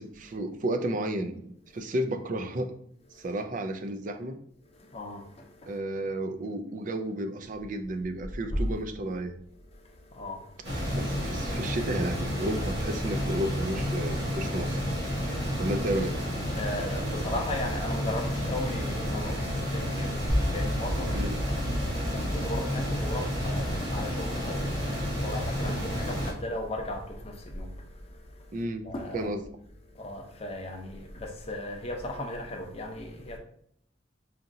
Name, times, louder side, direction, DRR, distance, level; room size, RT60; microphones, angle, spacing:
voice 1, 0.0-1.4 1.7-2.7 3.1-4.4 5.7-9.4 10.9-14.8 15.6-16.2 21.1-21.3 28.5-28.9 29.1-29.4, right 1 dB, 45° right, 0.4 m, -32 dB
voice 2, 4.6-5.8 8.5-8.8 9.5-11.0 12.5-12.6 16.5-29.3 29.8-33.4, left 1 dB, 35° left, 0.6 m, -37 dB
sound 1, 10.6-26.3, equal, 65° right, 1.4 m, -31 dB
sound 2, 20.3-30.3, equal, 5° right, 0.7 m, -36 dB
5.0 x 2.7 x 2.6 m
head